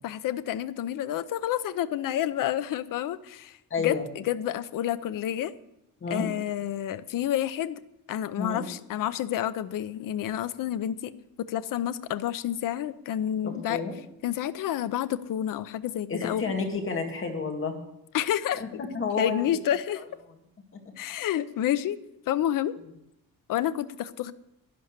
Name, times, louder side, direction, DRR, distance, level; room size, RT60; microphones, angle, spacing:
voice 1, 0.0-5.5 6.1-7.8 8.1-11.1 11.5-13.8 14.2-16.4 18.1-18.6 19.2-20.0 21.0-22.0 22.3-22.8 23.5-24.3, left 11 dB, 65° left, 13 dB, 0.7 m, -29 dB
voice 2, 3.7-4.1 6.0-6.3 8.4-8.6 13.4-13.9 16.1-17.7 18.6-18.7 18.9-19.4 20.0-20.1, left 4 dB, 35° left, 3 dB, 2.1 m, -30 dB
11.0 x 11.0 x 6.6 m, 0.84 s
wide cardioid pair, 175°, 35 cm